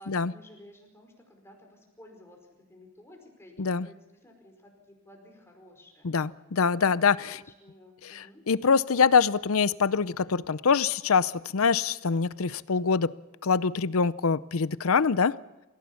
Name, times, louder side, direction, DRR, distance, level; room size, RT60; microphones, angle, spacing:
voice 1, 0.0-6.1 7.3-8.4, left 1 dB, 10° left, 2 dB, 4.8 m, -53 dB
voice 2, 6.0-7.4 8.0-13.1 13.4-15.3, left 5 dB, 75° left, 17 dB, 0.6 m, -24 dB
28.5 x 16.0 x 7.1 m, 1.0 s
head